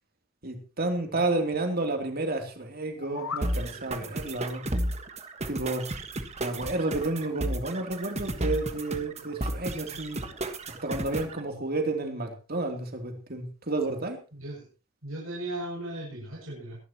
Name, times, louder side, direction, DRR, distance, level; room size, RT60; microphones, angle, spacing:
voice 1, 0.4-4.6 5.5-5.9 6.4-10.2 10.8-14.2, right 2 dB, 50° right, 4 dB, 3.2 m, -31 dB
sound 1, 2.8-3.5, left 6 dB, 90° left, 1.3 m, -37 dB
sound 2, 3.4-11.4, right 1 dB, 35° right, 1.5 m, -33 dB
voice 2, 14.3-14.7 15.0-16.8, right 1 dB, 85° right, -4 dB, 7.2 m, -37 dB
23.5 x 12.0 x 3.0 m, 0.33 s
head